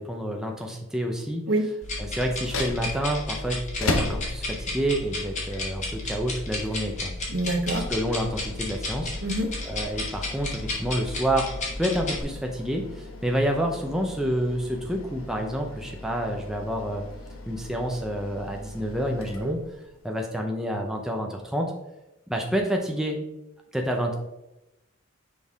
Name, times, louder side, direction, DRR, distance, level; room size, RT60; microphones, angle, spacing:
voice 1, 0.0-1.4 2.0-7.1 7.7-9.1 9.7-17.0 17.5-19.6 20.0-21.7 22.3-23.2 23.7-24.1, equal, ahead, 1 dB, 0.6 m, -28 dB
sound 1, 1.8-12.2, left 2 dB, 35° left, 1.6 m, -33 dB
sound 2, 2.3-20.1, left 2 dB, 85° left, 0.9 m, -38 dB
voice 2, 7.3-7.9 9.2-9.5 19.4-19.5, right 1 dB, 60° right, 5 dB, 0.9 m, -26 dB
6.4 x 5.4 x 3.6 m, 0.94 s
head